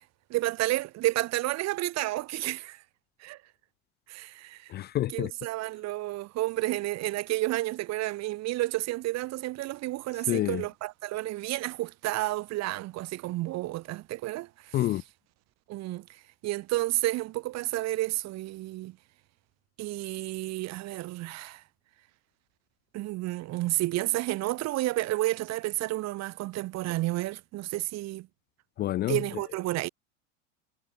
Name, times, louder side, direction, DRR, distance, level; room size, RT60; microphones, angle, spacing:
voice 1, 0.3-2.8 3.2-3.4 4.1-4.7 5.1-14.8 15.7-16.1 16.4-19.0 19.8-21.6 22.9-28.3 29.1-29.9, right 17 dB, 40° right, 1.0 m, -31 dB
voice 2, 4.7-5.3 10.3-10.6 14.7-15.0 28.8-29.2, left 14 dB, 30° left, 0.4 m, -28 dB
hypercardioid pair, 95°, 39 cm